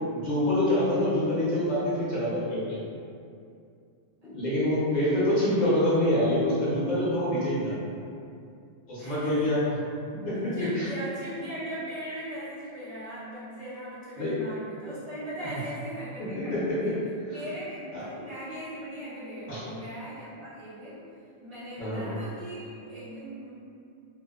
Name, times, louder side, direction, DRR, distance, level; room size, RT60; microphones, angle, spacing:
voice 1, 0.1-2.8 4.2-7.8 8.9-9.6 10.2-10.9 14.2-14.3 16.5-16.9 17.9-18.0 19.5-19.6 21.8-22.0, left 1 dB, 45° left, -9 dB, 0.7 m, -26 dB
voice 2, 9.0-9.6 10.5-17.0 17.3-21.0 21.4-23.5, right 1 dB, 60° right, -10 dB, 0.4 m, -39 dB
2.8 x 2.0 x 2.2 m, 2.5 s
omnidirectional pair, 1.2 m